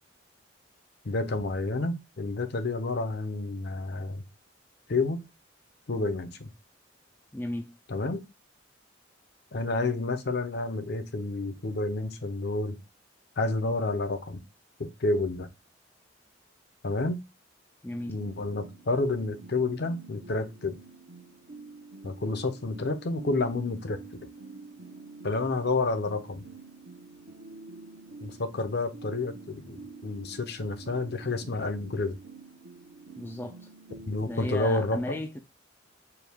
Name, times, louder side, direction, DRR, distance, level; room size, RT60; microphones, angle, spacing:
voice 1, 1.0-4.2 4.9-5.2 5.9-6.5 7.9-8.2 9.5-12.8 13.4-14.4 14.8-15.5 16.8-17.2 18.1-20.8 22.0-24.0 25.2-26.4 28.2-29.8 30.0-32.2 34.1-35.2, left 2 dB, 55° left, 0.6 m, -29 dB
voice 2, 7.3-7.8 17.8-18.2 33.2-33.7 34.2-35.4, left 1 dB, 10° left, 0.3 m, -35 dB
sound 1, 17.9-34.5, right 3 dB, 60° right, 0.8 m, -48 dB
4.5 x 2.3 x 3.4 m
head